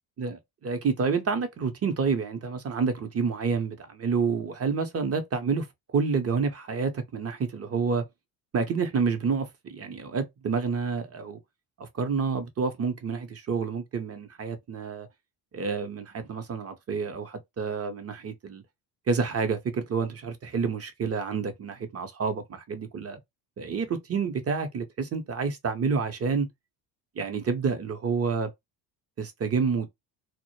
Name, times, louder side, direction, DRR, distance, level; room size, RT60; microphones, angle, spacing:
voice 1, 0.2-5.7 5.9-8.1 8.5-11.4 11.8-15.1 15.5-18.6 19.1-23.2 23.6-26.5 27.2-28.5 29.2-29.9, right 5 dB, 30° right, 0.7 m, -29 dB
2.1 x 2.0 x 3.0 m
supercardioid pair, 80°, 47 cm